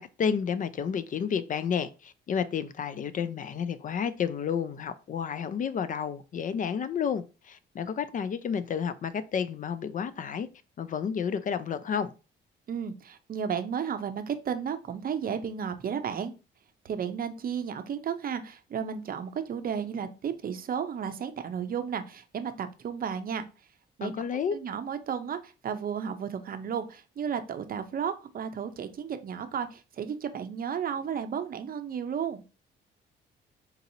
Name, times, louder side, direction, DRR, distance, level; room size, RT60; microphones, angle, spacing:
voice 1, 0.0-10.5 10.8-12.1 24.0-24.6, left 7 dB, 40° left, 0.4 m, -31 dB
voice 2, 12.7-16.3 16.8-23.4 24.0-24.2 24.5-32.4, right 7 dB, 45° right, 0.6 m, -33 dB
3.9 x 2.8 x 2.7 m
cardioid pair, 90°, 20 cm